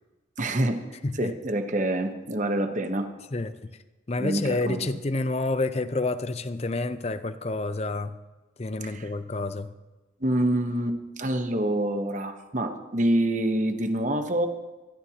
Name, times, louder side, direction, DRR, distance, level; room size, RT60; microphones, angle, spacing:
voice 1, 0.4-0.9 1.2-3.1 4.2-4.9 8.9-9.1 10.2-14.5, right 1 dB, 40° right, 6 dB, 1.0 m, -26 dB
voice 2, 4.1-8.2 8.6-9.7, left 2 dB, 35° left, 11 dB, 0.6 m, -29 dB
24.5 x 11.0 x 2.9 m, 1.1 s
head